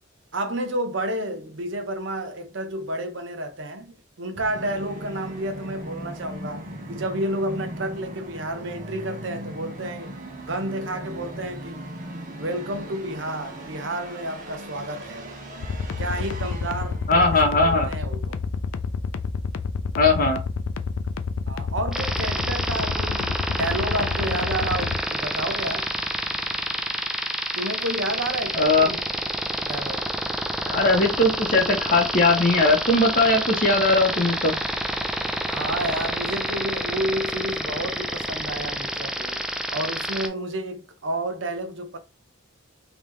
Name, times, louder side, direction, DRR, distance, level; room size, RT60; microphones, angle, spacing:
voice 1, 0.3-10.2 10.5-11.8 12.4-15.3 16.0-18.4 21.5-25.9 27.6-29.0 29.6-30.1 35.5-39.4 39.7-42.0, right 1 dB, 60° right, 0.8 m, -30 dB
Musical instrument, 4.3-18.0, right 1 dB, 40° right, 0.9 m, -38 dB
sound 1, 15.6-25.0, left 5 dB, 75° left, 0.4 m, -28 dB
voice 2, 17.1-17.9 20.0-20.4 28.5-28.9 30.6-34.5, left 2 dB, 40° left, 0.9 m, -19 dB
sound 2, 21.9-40.3, equal, 5° right, 0.3 m, -28 dB
3.5 x 3.0 x 3.1 m
head